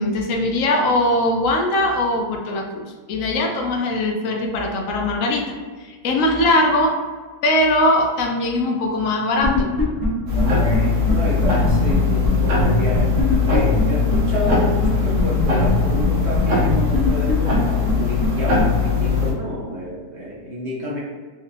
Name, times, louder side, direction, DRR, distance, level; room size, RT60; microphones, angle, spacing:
voice 1, 0.0-5.5 5.8-7.0 7.4-9.7, left 1 dB, 70° left, 2 dB, 0.8 m, -20 dB
sound 1, 9.4-10.1 10.4-10.5 10.7-10.8 11.1-11.2 11.4-11.9 12.2-12.3 12.6-12.7 12.9-13.8 14.1-14.2 14.5-14.6 14.8-14.9 15.2-15.7 16.0-16.1 16.3-16.4 16.7-17.6 17.9-18.0 18.2-18.3 18.6-18.7, left 2 dB, 20° left, 0.6 m, -21 dB
voice 2, 10.3-13.1 13.4-21.0, equal, 55° right, -6 dB, 0.9 m, -29 dB
sound 2, 10.3-19.3, left 4 dB, 75° right, 1.4 m, -20 dB
4.0 x 2.6 x 2.5 m, 1.5 s
omnidirectional pair, 1.7 m